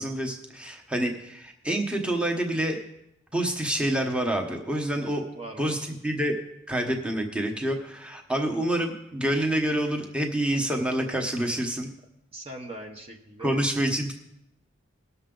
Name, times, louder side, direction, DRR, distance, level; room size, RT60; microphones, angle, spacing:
voice 1, 0.0-2.8 3.3-5.3 5.6-6.4 6.7-11.9 13.4-14.1, right 1 dB, 5° right, 2 dB, 1.0 m, -27 dB
voice 2, 5.3-5.9 12.3-13.6, right 1 dB, 30° right, 2 dB, 0.8 m, -41 dB
19.0 x 6.8 x 3.8 m, 0.83 s
head